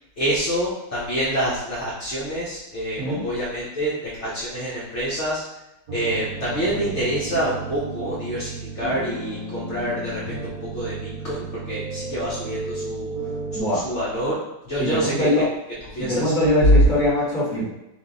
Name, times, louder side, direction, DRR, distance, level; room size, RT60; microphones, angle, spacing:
voice 1, 0.2-5.4 5.9-10.5 10.7-10.9 11.2-13.1 13.6-15.3 15.9-16.8, equal, 55° left, -8 dB, 1.0 m, -25 dB
sound 1, 5.9-13.6, right 3 dB, 60° right, 1.2 m, -33 dB
voice 2, 14.8-15.5 16.0-17.6, left 1 dB, 5° left, -7 dB, 1.1 m, -22 dB
3.5 x 2.7 x 3.8 m, 0.90 s
omnidirectional pair, 1.7 m